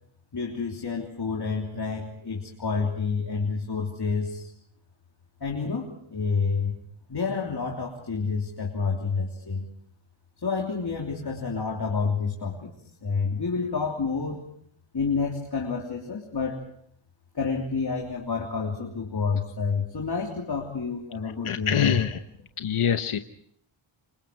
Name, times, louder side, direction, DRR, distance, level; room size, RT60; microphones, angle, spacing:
voice 1, 0.3-4.5 5.4-6.8 7.1-9.7 10.4-12.7 13.0-14.4 14.9-16.7 17.3-22.0, left 5 dB, 50° left, 0 dB, 3.4 m, -29 dB
voice 2, 21.2-22.2 22.6-23.2, left 8 dB, 80° left, 8 dB, 1.1 m, -25 dB
28.0 x 25.0 x 4.7 m, 0.67 s
wide cardioid pair, 75°, 50 cm